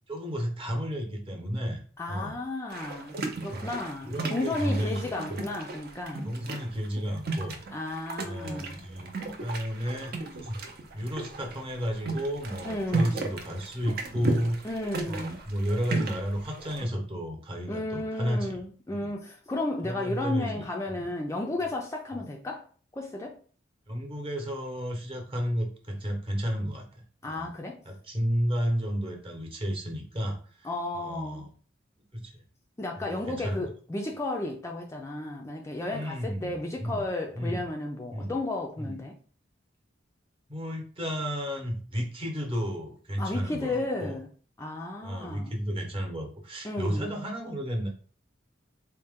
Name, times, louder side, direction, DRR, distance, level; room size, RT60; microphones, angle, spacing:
voice 1, 0.1-1.8 2.1-2.4 3.5-3.8 4.0-5.0 5.3-5.5 6.2-7.6 8.2-9.1 9.4-10.1 10.4-10.6 10.9-14.7 15.1-18.6 18.9-19.1 19.8-20.6 20.9-21.1 23.9-26.8 27.2-27.5 27.8-30.7 30.9-31.5 32.1-32.3 33.0-33.7 35.9-37.0 37.3-37.6 38.1-38.3 38.8-39.0 40.5-44.2 45.0-47.9, equal, 30° right, 0.9 m, -32 dB
voice 2, 2.0-6.3 7.7-8.8 12.7-13.4 14.6-15.4 17.7-22.7 22.9-23.4 27.2-27.8 30.6-31.5 32.8-39.1 43.2-44.3 44.6-45.6 46.6-47.1, left 2 dB, 15° left, 0.3 m, -33 dB
sound 1, 2.7-16.8, right 3 dB, 55° right, 0.6 m, -35 dB
4.1 x 2.1 x 3.5 m
head